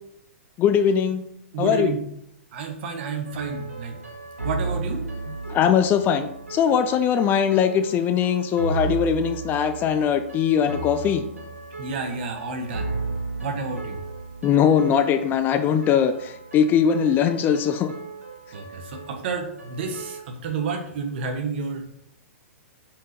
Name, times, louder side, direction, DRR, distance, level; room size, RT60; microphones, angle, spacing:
voice 1, 0.6-1.2 1.6-2.0 5.5-11.2 14.4-17.9, left 8 dB, 25° left, 9 dB, 0.6 m, -21 dB
voice 2, 1.5-2.0 2.5-4.0 4.4-5.0 11.8-13.0 13.4-14.0 18.5-22.0, right 4 dB, 50° right, 4 dB, 1.7 m, -30 dB
sound 1, 3.2-20.2, right 4 dB, 85° right, 2.3 m, -35 dB
6.0 x 5.3 x 5.3 m, 0.76 s
figure-of-eight pair, 110°, 7 cm